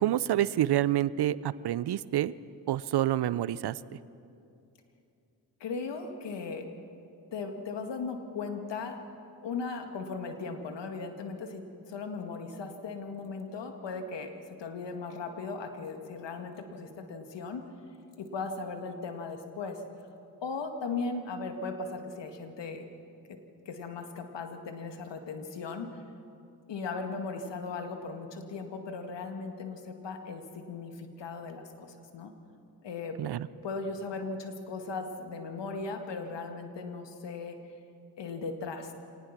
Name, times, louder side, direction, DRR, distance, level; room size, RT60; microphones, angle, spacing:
voice 1, 0.0-2.3 2.7-3.8 33.2-33.5, right 13 dB, 60° right, 18 dB, 0.7 m, -28 dB
voice 2, 5.6-6.7 7.3-9.0 9.4-11.6 11.9-14.3 14.6-17.6 18.2-19.8 20.4-22.8 23.3-23.4 23.7-25.9 26.7-32.3 32.8-33.1 33.6-37.6 38.2-38.9, left 4 dB, 70° left, 6 dB, 2.2 m, -37 dB
25.0 x 19.0 x 6.0 m, 2.6 s
supercardioid pair, 40°, 45 cm